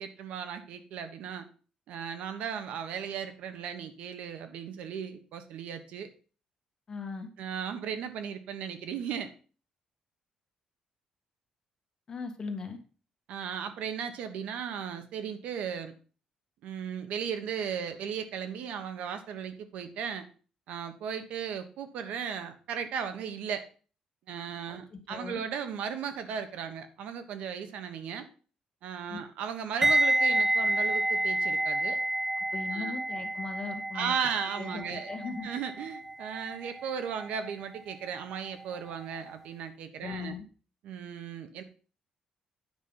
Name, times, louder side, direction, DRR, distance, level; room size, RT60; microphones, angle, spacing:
voice 1, 0.0-1.5 1.9-6.1 7.4-9.3 13.3-15.9 16.6-20.2 20.7-23.6 24.3-28.3 28.8-32.0 32.7-33.0 33.9-35.1 35.4-40.3 40.8-41.6, right 7 dB, 85° right, 9 dB, 1.3 m, -36 dB
voice 2, 6.9-7.3 12.1-12.8 24.7-25.4 29.1-29.2 32.5-34.1 34.6-35.5 40.0-40.4, left 4 dB, 30° left, 5 dB, 1.8 m, -38 dB
sound 1, 29.8-38.8 39.0-39.3, right 1 dB, 15° right, 0.6 m, -30 dB
9.6 x 5.7 x 5.5 m, 0.39 s
cardioid pair, 140°, 2 cm